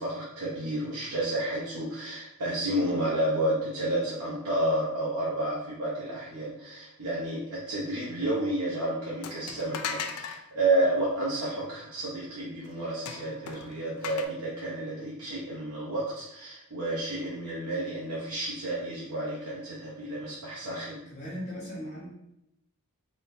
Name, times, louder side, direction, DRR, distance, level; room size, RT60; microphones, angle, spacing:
voice 1, 0.0-21.0, right 1 dB, 80° right, -8 dB, 0.9 m, -31 dB
sound 1, 9.2-10.4 13.1-14.3, left 6 dB, 75° left, 0.4 m, -37 dB
voice 2, 21.1-22.0, equal, 35° left, -9 dB, 1.0 m, -38 dB
3.9 x 3.0 x 2.6 m, 0.85 s
head